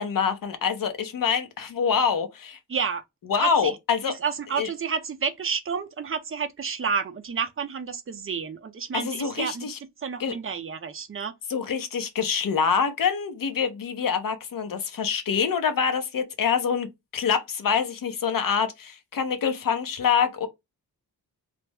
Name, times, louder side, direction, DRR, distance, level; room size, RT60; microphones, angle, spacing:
voice 1, 0.0-2.6 3.3-4.1 4.6-4.7 9.0-9.8 10.2-10.4 11.5-16.9 17.1-20.5, left 6 dB, 55° left, 0.8 m, -25 dB
voice 2, 2.7-3.0 3.4-3.7 4.1-9.7 10.0-11.3, right 6 dB, 35° right, 0.6 m, -30 dB
3.3 x 2.0 x 3.3 m
wide cardioid pair, 145°, 39 cm